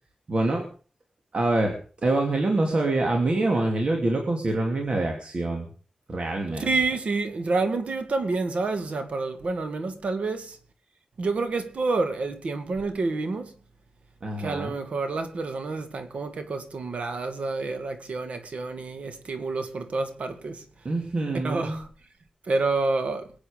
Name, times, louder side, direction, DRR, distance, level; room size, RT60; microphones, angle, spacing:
voice 1, 0.3-0.6 1.3-1.8 2.0-5.7 6.1-6.7 14.2-14.8 20.8-21.8, right 2 dB, 55° right, 2.6 m, -25 dB
voice 2, 6.6-10.6 11.2-13.5 14.4-20.6 21.4-21.9 22.4-23.3, right 3 dB, 70° right, 2.1 m, -28 dB
21.5 x 8.6 x 5.1 m
wide cardioid pair, 75°, 2 cm